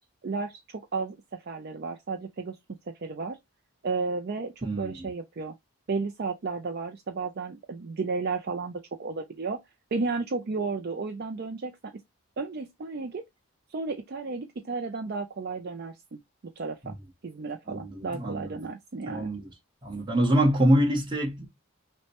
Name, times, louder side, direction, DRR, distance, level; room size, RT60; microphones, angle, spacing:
voice 1, 0.2-2.6 3.0-3.4 3.8-5.5 5.9-9.6 9.9-11.9 12.4-13.2 13.7-16.2 16.6-17.0 17.2-19.3, right 4 dB, 50° right, 0.4 m, -33 dB
voice 2, 4.6-5.0 16.8-16.9 17.7-18.5 19.1-19.5 19.8-21.5, right 1 dB, 20° right, 1.2 m, -25 dB
5.9 x 2.2 x 2.9 m
head